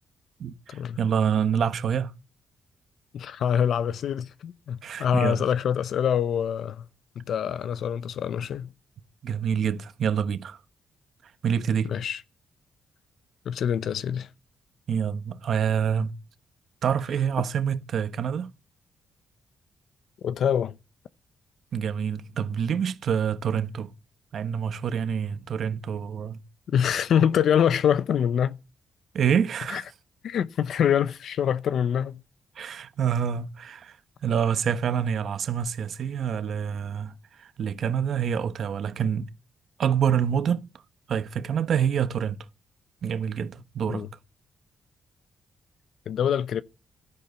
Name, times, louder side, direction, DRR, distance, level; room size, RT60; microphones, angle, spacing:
voice 1, 0.4-2.1 4.8-5.4 9.2-10.6 11.4-11.9 14.9-16.1 16.8-18.5 21.7-23.9 24.3-26.4 29.1-29.8 32.6-34.0 34.2-37.1 37.4-39.3 39.8-40.7 41.1-42.4 43.0-44.1, right 8 dB, 65° right, 1.0 m, -26 dB
voice 2, 3.1-6.8 7.2-8.7 11.9-12.2 13.5-14.3 20.2-20.7 26.7-28.6 29.7-29.8 30.2-32.2 43.9-44.1 46.1-46.6, left 8 dB, 75° left, 0.6 m, -25 dB
12.0 x 10.5 x 8.0 m
cardioid pair, 90°, 0 cm